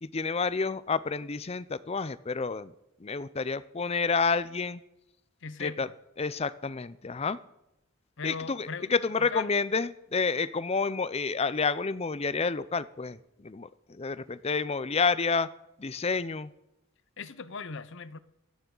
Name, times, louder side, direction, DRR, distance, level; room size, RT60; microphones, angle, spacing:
voice 1, 0.0-2.7 3.0-4.8 5.6-5.9 6.2-7.4 8.2-15.5 15.8-16.5, left 4 dB, 30° left, 0.5 m, -29 dB
voice 2, 5.4-5.9 8.2-9.5 17.2-18.2, left 5 dB, 55° left, 0.8 m, -39 dB
27.0 x 9.6 x 3.9 m
head